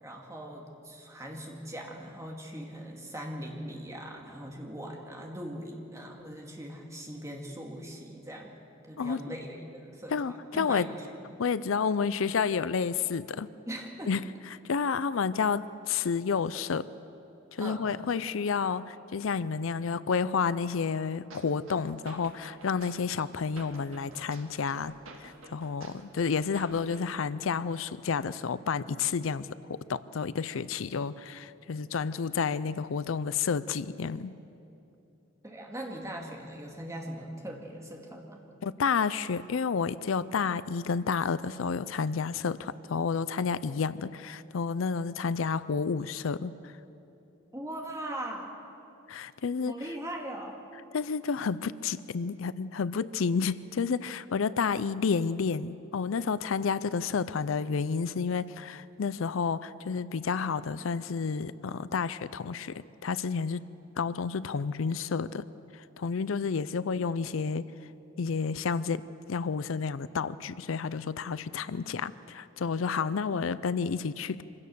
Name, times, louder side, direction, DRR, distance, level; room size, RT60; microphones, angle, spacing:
voice 1, 0.0-8.5 8.8-11.0 13.7-14.1 17.6-17.9 35.4-38.4 47.5-48.5 49.7-50.6, right 1 dB, 15° right, 0 dB, 2.1 m, -40 dB
voice 2, 9.0-9.3 10.1-10.9 11.4-13.5 14.0-16.9 17.5-34.3 38.6-46.7 49.1-49.8 50.9-63.7 64.0-65.5 65.7-67.7 68.2-69.0 69.3-74.4, left 5 dB, 75° left, 16 dB, 0.5 m, -30 dB
sound 1, 21.3-27.3, right 2 dB, 75° right, 2.0 m, -50 dB
25.0 x 16.5 x 6.9 m, 2.8 s
head